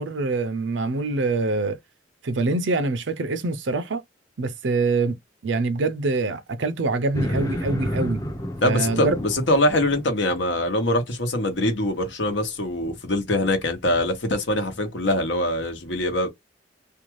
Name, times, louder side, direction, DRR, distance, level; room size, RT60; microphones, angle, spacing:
voice 1, 0.0-1.8 2.2-4.0 4.4-5.2 5.4-8.2 8.6-9.2, right 3 dB, 75° right, 0.5 m, -24 dB
sound 1, 7.1-10.2, equal, 20° left, 0.6 m, -30 dB
voice 2, 8.6-16.3, left 1 dB, 70° left, 1.0 m, -23 dB
2.6 x 2.3 x 3.0 m
head